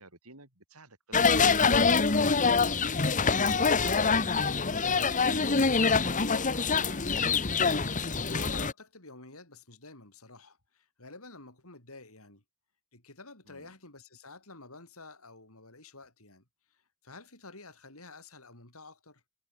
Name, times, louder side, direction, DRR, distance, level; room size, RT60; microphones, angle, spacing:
voice 1, 0.0-1.8 2.1-2.6 3.4-7.0 13.5-13.7, right 2 dB, 85° right, 7.9 m, -51 dB
sound 1, 1.1-8.7, left 5 dB, 35° left, 1.3 m, -25 dB
voice 2, 7.9-12.4 12.9-16.4 16.7-19.2, left 3 dB, 75° left, 7.6 m, -50 dB
head